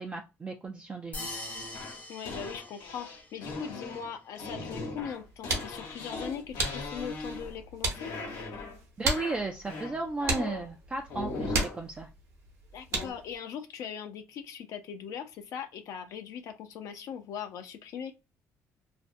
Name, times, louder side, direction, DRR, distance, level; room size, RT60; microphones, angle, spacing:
voice 1, 0.0-1.4 9.0-12.1, right 3 dB, 20° right, 0.3 m, -35 dB
sound 1, 1.1-3.4, left 2 dB, 25° left, 0.7 m, -42 dB
sound 2, 1.2-7.7 7.9-8.8 9.1-10.7 11.1-11.8 12.9-13.1, left 3 dB, 90° left, 1.0 m, -39 dB
voice 2, 2.1-8.1 12.7-18.1, left 8 dB, 70° left, 0.5 m, -40 dB
sound 3, 5.1-13.4, right 2 dB, 55° right, 0.9 m, -36 dB
2.4 x 2.0 x 2.5 m
cardioid pair, 150°, 6 cm